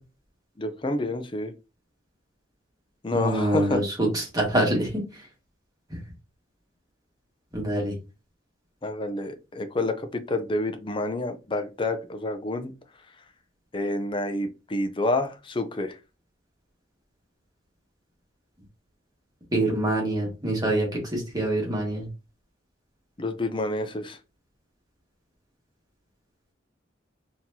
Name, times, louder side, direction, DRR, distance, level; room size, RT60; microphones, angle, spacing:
voice 1, 0.6-1.5 3.0-3.8 8.8-12.7 13.7-16.0 23.2-24.2, left 2 dB, 25° left, 8 dB, 0.5 m, -28 dB
voice 2, 3.1-5.0 7.5-7.9 19.5-22.1, right 1 dB, 20° right, -2 dB, 1.5 m, -25 dB
4.2 x 2.8 x 2.7 m, 0.29 s
head